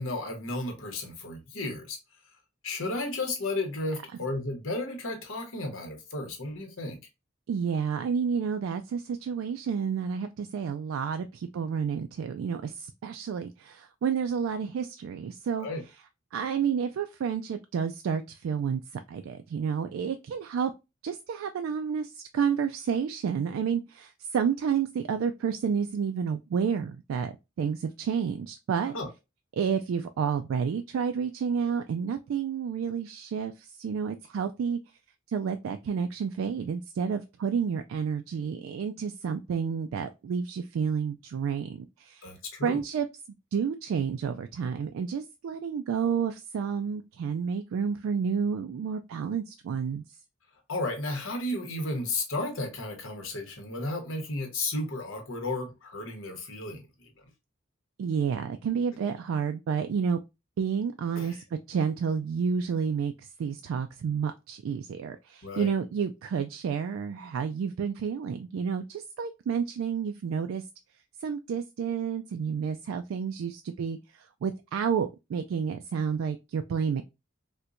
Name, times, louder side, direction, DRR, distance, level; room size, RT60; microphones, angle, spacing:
voice 1, 0.0-2.0 2.6-7.0 15.6-15.8 28.9-29.1 42.2-42.8 50.7-57.1 61.2-61.4 65.4-65.7, left 2 dB, 90° left, 1.1 m, -33 dB
voice 2, 7.5-15.7 16.3-18.8 19.1-20.7 21.0-29.0 29.5-34.8 35.3-42.3 42.6-43.1 43.5-50.0 58.0-60.2 60.6-70.6 71.2-77.0, right 6 dB, 85° right, 0.3 m, -30 dB
4.3 x 2.2 x 2.5 m
head